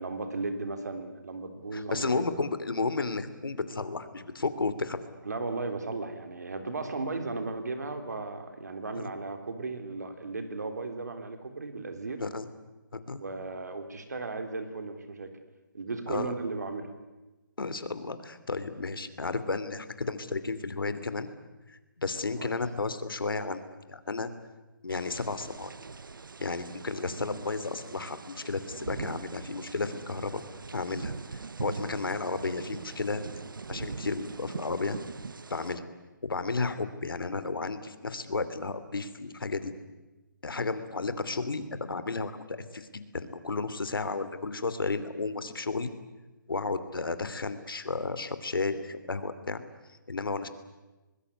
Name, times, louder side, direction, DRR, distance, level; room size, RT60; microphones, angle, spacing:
voice 1, 0.0-2.2 5.2-12.2 13.2-15.3 15.7-16.9 22.4-22.5, right 3 dB, 50° right, 7 dB, 3.5 m, -35 dB
voice 2, 1.7-5.0 8.9-9.1 12.2-12.5 12.9-13.2 16.1-16.3 17.6-21.3 21.7-23.6 23.9-24.3 24.8-25.7 26.4-30.4 30.7-33.2 33.7-35.0 35.5-35.8 36.2-39.7 40.4-45.9 46.5-49.6 50.1-50.5, left 3 dB, 85° left, 12 dB, 2.8 m, -33 dB
sound 1, 24.9-35.8, right 4 dB, 75° right, 1.0 m, -42 dB
25.0 x 20.5 x 9.8 m, 1.1 s
hypercardioid pair, 180°, 11 cm